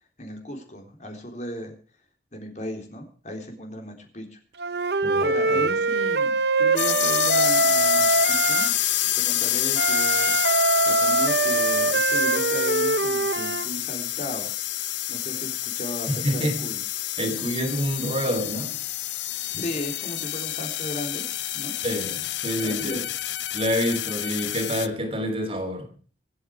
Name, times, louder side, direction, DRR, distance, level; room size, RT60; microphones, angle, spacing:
voice 1, 0.2-1.7 2.3-4.4 5.2-8.7 9.0-10.3 10.8-14.5 15.1-16.8 17.4-17.5 19.5-21.2 21.5-21.7 22.6-23.1, equal, 40° left, 3.7 m, -35 dB
Wind instrument woodwind instrument, 4.6-8.7 9.7-13.7, right 3 dB, 65° right, 0.9 m, -23 dB
voice 2, 5.0-5.6 16.1-16.6 17.2-18.7 21.8-23.0 23.5-25.9, equal, 30° right, 3.1 m, -27 dB
sound 1, 6.8-24.9, left 14 dB, 75° left, 0.8 m, -28 dB
25.5 x 8.7 x 4.7 m
head